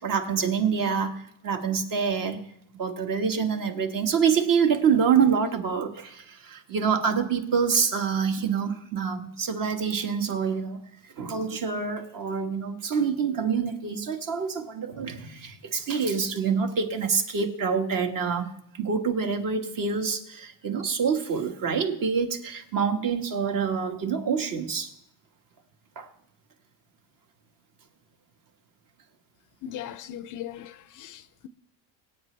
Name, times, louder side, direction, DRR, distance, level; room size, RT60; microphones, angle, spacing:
voice 1, 0.0-2.4 2.8-10.8 11.2-24.9 26.0-26.1, right 6 dB, 45° right, 1.7 m, -26 dB
voice 2, 29.6-31.5, left 11 dB, 45° left, 0.5 m, -39 dB
23.0 x 8.9 x 3.4 m
cardioid pair, 125°, 45 cm